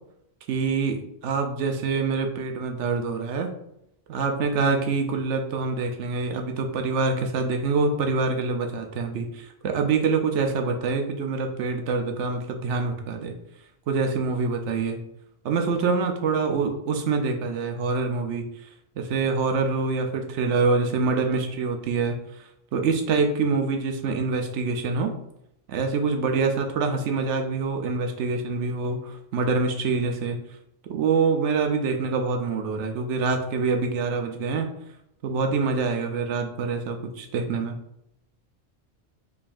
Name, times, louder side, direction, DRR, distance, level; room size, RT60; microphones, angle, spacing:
voice 1, 0.5-3.5 4.1-13.3 13.9-15.0 15.4-18.4 19.0-22.2 22.7-25.1 25.7-30.4 30.8-34.7 35.2-37.8, right 4 dB, 75° right, 4 dB, 0.9 m, -25 dB
3.8 x 3.3 x 2.5 m, 0.79 s
omnidirectional pair, 1.2 m